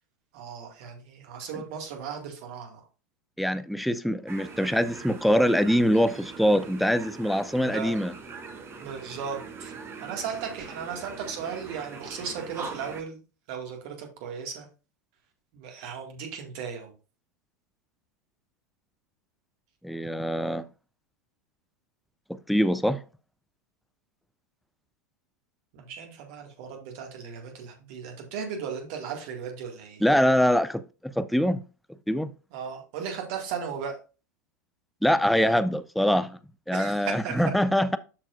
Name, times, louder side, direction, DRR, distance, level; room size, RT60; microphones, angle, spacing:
voice 1, 0.3-2.9 7.6-7.9 8.8-9.7 10.0-13.2 13.5-14.7 15.5-16.9 25.7-30.0 32.5-34.0 36.7-37.4, right 6 dB, 50° right, 2.0 m, -36 dB
voice 2, 3.4-8.1 19.8-20.7 22.3-23.0 30.0-31.6 32.1-32.3 35.0-36.4 36.7-38.0, equal, ahead, 0.4 m, -24 dB
sound 1, 4.3-13.0, right 4 dB, 25° right, 1.4 m, -42 dB
12.5 x 4.4 x 2.5 m
figure-of-eight pair, 85°, 9 cm